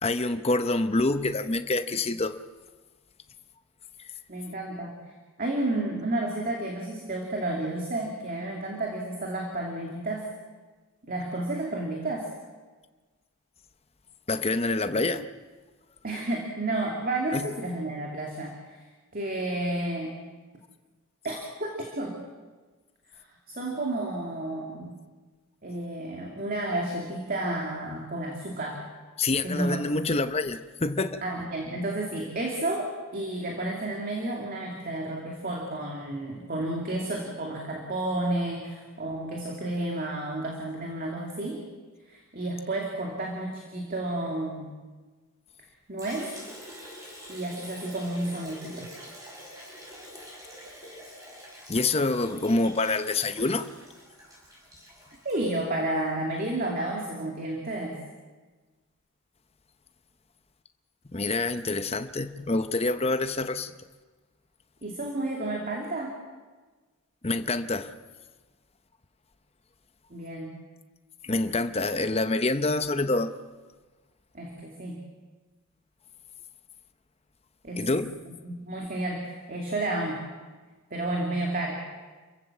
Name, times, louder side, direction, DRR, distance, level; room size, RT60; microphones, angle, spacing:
voice 1, 0.0-2.4 14.3-15.3 17.3-17.5 29.2-31.2 51.7-53.7 61.1-63.7 67.2-67.9 71.2-73.3 77.8-78.2, left 2 dB, 25° left, 0.8 m, -26 dB
voice 2, 4.3-5.0 5.4-10.3 11.1-12.3 16.0-18.8 19.1-20.1 21.2-22.2 23.5-24.9 25.6-28.8 29.4-29.8 31.2-41.7 42.1-44.7 45.9-46.3 47.3-48.9 55.2-58.0 64.8-66.2 70.1-70.5 74.3-75.0 77.6-77.9 78.3-80.2 80.9-81.8, right 1 dB, 40° right, 2.6 m, -31 dB
Liquid, 46.0-56.1, equal, 15° right, 6.6 m, -46 dB
28.5 x 15.5 x 7.4 m
head